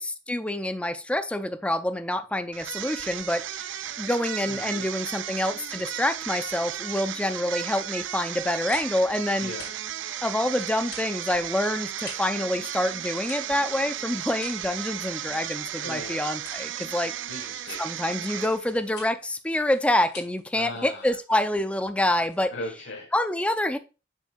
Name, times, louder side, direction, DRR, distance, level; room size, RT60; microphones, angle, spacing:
voice 1, 0.0-9.5 10.2-17.1 17.8-22.5 23.1-23.8, left 1 dB, 5° left, 0.4 m, -27 dB
sound 1, 2.5-18.9, right 11 dB, 85° right, 0.4 m, -35 dB
voice 2, 4.5-4.9 9.4-9.8 15.8-16.3 17.3-17.8 20.5-21.1 22.5-23.1, left 1 dB, 85° left, 1.4 m, -38 dB
sound 2, 8.1-22.8, left 4 dB, 60° left, 2.8 m, -49 dB
6.6 x 6.3 x 2.5 m
head